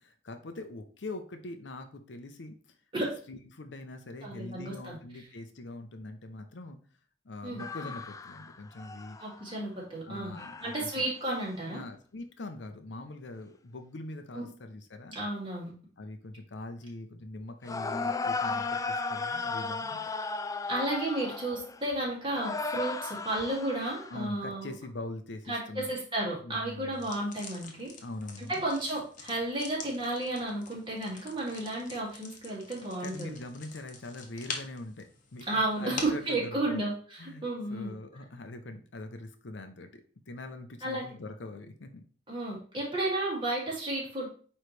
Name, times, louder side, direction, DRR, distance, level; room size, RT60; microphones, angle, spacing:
voice 1, 0.0-2.5 3.3-6.8 7.2-9.2 10.1-11.0 11.7-15.2 16.0-20.1 24.1-26.0 26.4-27.0 28.0-28.6 33.0-36.9 37.2-37.4 37.7-40.0 40.3-42.0, left 2 dB, 70° left, 7 dB, 0.7 m, -43 dB
voice 2, 4.2-5.0 7.4-7.6 9.2-10.4 10.6-11.8 14.3-14.4 15.1-15.7 20.7-24.7 25.5-27.9 28.5-33.4 35.5-37.9 40.8-41.1 42.3-44.3, right 1 dB, 30° right, -4 dB, 2.4 m, -32 dB
sound 1, 7.6-9.5 10.3-11.0 11.4-11.5 17.6-22.0 22.3-24.2, left 4 dB, 20° left, 0.3 m, -35 dB
sound 2, 26.9-36.3, left 4 dB, 45° left, 1.0 m, -45 dB
9.0 x 3.2 x 3.2 m, 0.43 s
head